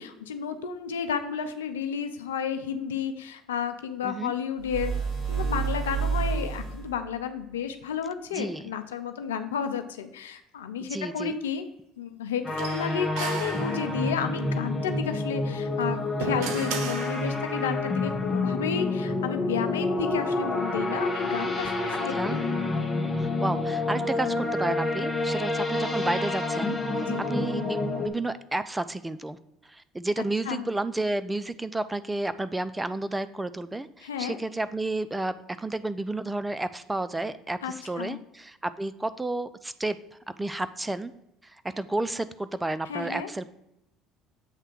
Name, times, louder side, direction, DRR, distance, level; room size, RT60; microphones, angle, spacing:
voice 1, 0.0-4.9 5.3-11.6 12.0-22.5 27.0-27.2 30.5-30.7 34.0-34.4 37.6-38.2 42.9-43.3, left 7 dB, 90° left, 8 dB, 0.5 m, -32 dB
sound 1, 4.6-7.0, right 6 dB, 35° right, 3.0 m, -29 dB
voice 2, 8.3-8.7 10.8-11.3 22.1-22.4 23.2-29.4 29.7-40.0 40.4-41.1 41.4-43.4, right 2 dB, 15° right, 13 dB, 0.5 m, -31 dB
sound 2, 12.4-28.1, left 2 dB, 15° left, 1.5 m, -28 dB
sound 3, 12.6-14.3 15.7-17.7, right 5 dB, 70° right, 0.8 m, -36 dB
8.1 x 3.3 x 6.1 m, 0.84 s
hypercardioid pair, 70°, 0 cm